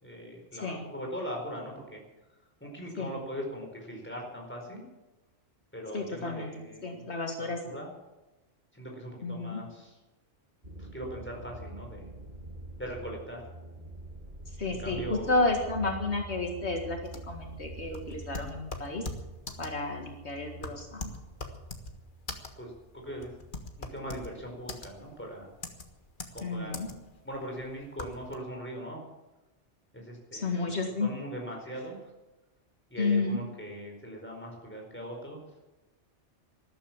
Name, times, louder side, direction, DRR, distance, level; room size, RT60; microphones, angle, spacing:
voice 1, 0.0-2.0 2.6-4.8 5.7-7.9 8.7-10.0 10.8-12.1 12.8-13.5 14.7-15.5 20.6-20.7 22.6-23.3 23.8-25.5 26.3-27.0 27.2-29.0 29.9-30.7 31.0-32.1 32.9-35.4, equal, 10° left, 0 dB, 4.6 m, -40 dB
voice 2, 5.9-6.5 6.8-7.6 9.2-9.6 14.6-17.0 17.3-19.1 19.6-21.1 26.4-26.9 30.3-31.1 33.0-33.4, left 3 dB, 65° left, 2 dB, 2.1 m, -31 dB
sound 1, 10.6-23.7 24.0-24.6, right 2 dB, 45° right, 2.2 m, -46 dB
sound 2, 17.1-28.3, left 3 dB, 45° left, 1.7 m, -41 dB
13.5 x 13.0 x 7.4 m, 1.0 s
omnidirectional pair, 1.2 m